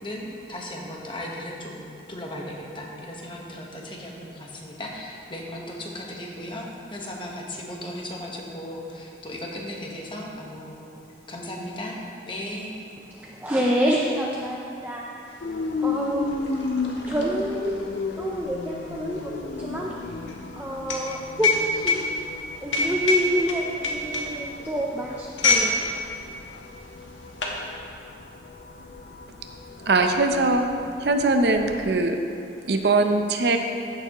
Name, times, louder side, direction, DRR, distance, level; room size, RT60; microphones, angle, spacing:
voice 1, 0.0-10.9 11.3-12.0 12.3-12.7, left 1 dB, 25° left, -2 dB, 1.2 m, -36 dB
voice 2, 13.2-15.0 15.8-16.3 17.1-17.7 18.2-19.3 19.6-19.9 20.5-22.0 22.6-25.9, equal, 10° right, -3 dB, 0.5 m, -27 dB
sound 1, 15.4-15.5 15.8-25.7 26.0-26.3 27.0-27.6, left 3 dB, 90° left, 1.3 m, -26 dB
sound 2, 15.4-32.0, left 3 dB, 60° left, 0.6 m, -35 dB
voice 3, 29.9-30.6 31.0-32.2 32.7-33.6, right 3 dB, 60° right, 5 dB, 0.6 m, -21 dB
15.0 x 6.9 x 3.0 m, 2.7 s
head